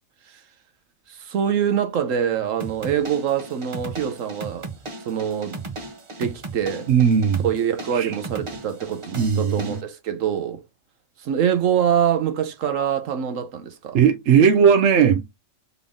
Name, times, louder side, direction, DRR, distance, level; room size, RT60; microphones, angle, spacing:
voice 1, 1.1-4.7 5.1-5.6 6.2-6.9 7.4-10.6 11.2-14.0, right 8 dB, 90° right, 1.2 m, -24 dB
sound 1, 2.6-9.8, right 3 dB, 30° right, 0.6 m, -37 dB
voice 2, 6.9-7.5 8.0-8.1 9.1-9.8 13.9-15.2, right 7 dB, 70° right, 1.0 m, -17 dB
3.9 x 3.5 x 3.6 m
omnidirectional pair, 1.3 m